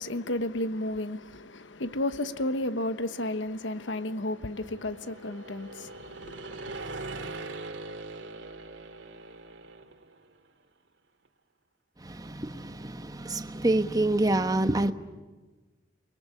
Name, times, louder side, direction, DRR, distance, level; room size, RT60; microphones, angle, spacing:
voice 1, 0.0-6.8, left 1 dB, 80° left, 1.2 m, -33 dB
sound 1, 3.3-10.3, right 2 dB, 85° right, 2.4 m, -42 dB
voice 2, 12.0-14.9, right 2 dB, 20° right, 1.2 m, -27 dB
30.0 x 22.0 x 8.5 m
head